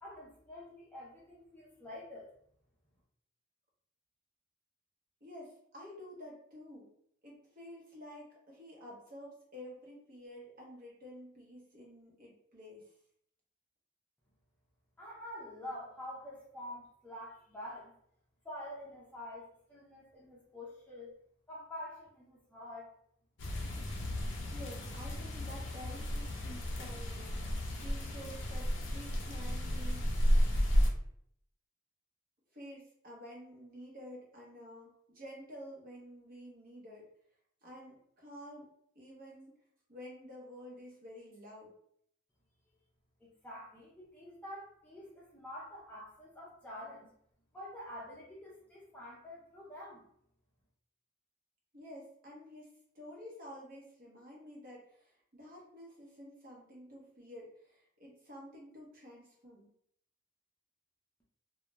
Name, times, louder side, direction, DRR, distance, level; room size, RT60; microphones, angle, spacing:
voice 1, 0.0-2.3 15.0-17.9 18.4-21.1 21.5-22.9 43.2-47.1 47.5-50.1, left 1 dB, 10° left, -6 dB, 0.5 m, -47 dB
voice 2, 5.2-6.9 7.2-12.9 24.5-30.2 32.5-37.1 37.6-38.6 38.9-39.5 39.9-41.7 51.7-52.7 52.9-59.7, equal, 45° right, -3 dB, 0.8 m, -50 dB
sound 1, 23.4-30.9, equal, 60° left, 0.5 m, -33 dB
2.3 x 2.1 x 3.0 m, 0.68 s
head